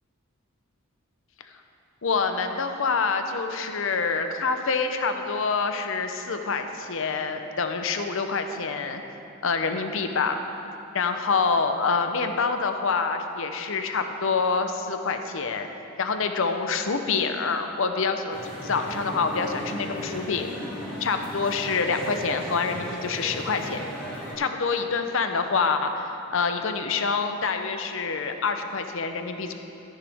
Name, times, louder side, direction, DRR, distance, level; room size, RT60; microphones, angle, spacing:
voice 1, 2.0-9.0 9.4-10.4 10.9-15.7 16.0-20.5 21.0-23.8 24.4-29.5, left 4 dB, 70° left, 7 dB, 0.7 m, -26 dB
sound 1, 18.3-24.4, equal, 5° left, 2.4 m, -36 dB
13.0 x 10.0 x 3.5 m, 2.8 s
head